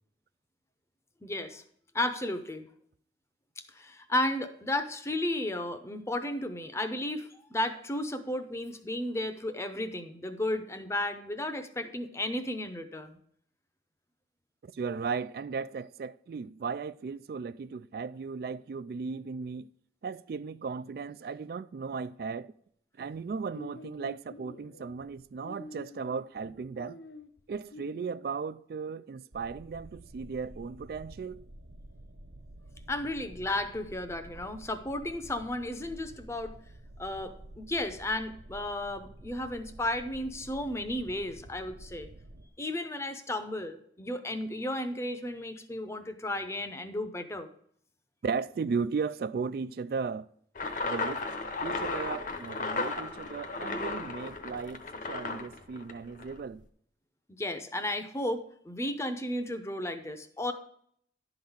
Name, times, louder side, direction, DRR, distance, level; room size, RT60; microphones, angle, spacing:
voice 1, 1.2-1.6 1.9-2.6 3.6-13.2 32.9-36.6 37.0-42.1 42.6-47.5 57.4-60.5, left 1 dB, 15° left, 0.7 m, -34 dB
voice 2, 14.6-19.7 20.0-22.5 23.0-27.0 27.5-31.4 48.2-50.3 50.8-51.2 51.6-56.6, right 5 dB, 55° right, 0.3 m, -36 dB
sound 1, 23.1-28.1, left 2 dB, 80° left, 0.6 m, -48 dB
sound 2, 29.3-42.5, right 1 dB, 70° right, 0.8 m, -50 dB
sound 3, 50.5-56.4, left 3 dB, 45° left, 0.9 m, -35 dB
11.5 x 3.9 x 7.1 m
head